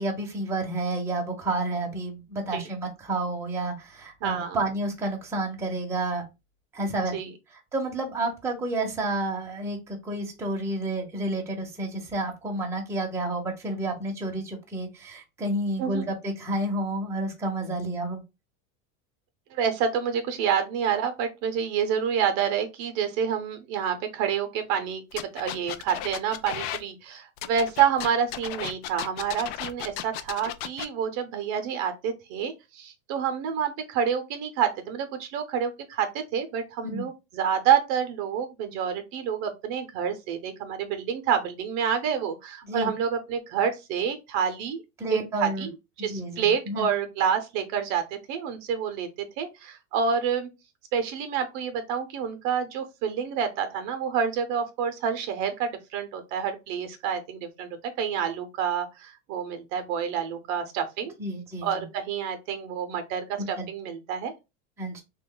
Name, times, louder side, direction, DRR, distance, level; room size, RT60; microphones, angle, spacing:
voice 1, 0.0-6.2 6.7-7.1 7.7-18.2 36.8-37.0 42.7-42.9 45.0-45.7 46.0-46.9 61.2-61.8 63.4-63.7 64.8-65.0, right 2 dB, 5° right, 0.7 m, -30 dB
voice 2, 4.2-4.6 7.1-7.3 15.8-16.1 19.5-44.8 45.4-45.7 46.0-49.1 49.4-50.5 50.9-61.1 61.6-64.3, right 7 dB, 45° right, 0.6 m, -28 dB
sound 1, 25.1-26.8 27.4-30.9, left 12 dB, 60° left, 0.5 m, -35 dB
3.3 x 2.2 x 3.7 m
supercardioid pair, 150°, 37 cm